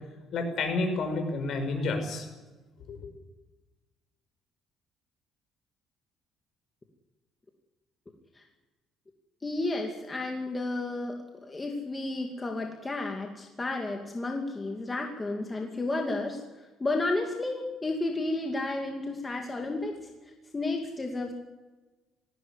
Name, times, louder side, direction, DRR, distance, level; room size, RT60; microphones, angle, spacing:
voice 1, 0.3-2.3 2.9-3.1, left 3 dB, 55° left, 6 dB, 5.8 m, -30 dB
voice 2, 9.4-16.4 16.8-20.1 20.5-21.3, left 2 dB, 20° left, 2 dB, 2.4 m, -32 dB
19.5 x 16.0 x 9.8 m, 1.2 s
cardioid pair, 135°, 0 cm